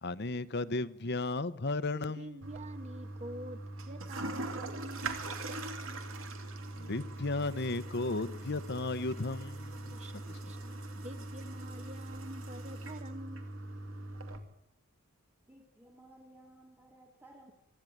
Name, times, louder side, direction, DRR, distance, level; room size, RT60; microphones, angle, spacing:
voice 1, 0.0-2.4 6.8-10.0 10.3-10.4, left 2 dB, 50° left, 1.0 m, -34 dB
voice 2, 2.1-5.1 9.9-13.5, right 1 dB, 30° right, 1.6 m, -47 dB
Toilet flush, 2.4-14.4, right 2 dB, 65° right, 2.7 m, -41 dB
voice 3, 15.4-17.5, right 1 dB, 10° right, 2.2 m, -57 dB
25.0 x 13.5 x 9.4 m
head